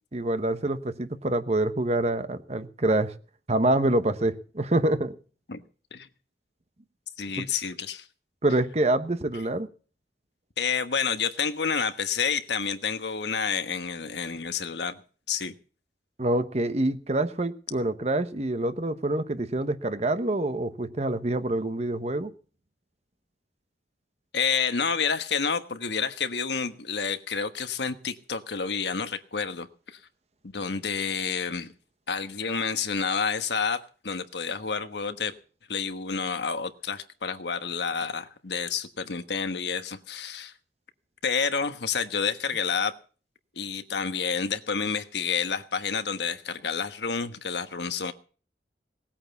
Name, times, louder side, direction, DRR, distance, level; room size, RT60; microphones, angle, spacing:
voice 1, 0.1-3.1 3.5-5.1 7.4-7.5 8.4-9.7 16.2-22.3, right 1 dB, 35° right, 1.0 m, -26 dB
voice 2, 7.2-8.0 10.6-15.0 15.3-15.5 24.3-29.7 30.5-31.7 32.1-35.3 35.7-40.5 41.2-42.9 43.6-48.1, left 6 dB, 70° left, 1.3 m, -29 dB
18.5 x 8.8 x 7.0 m
head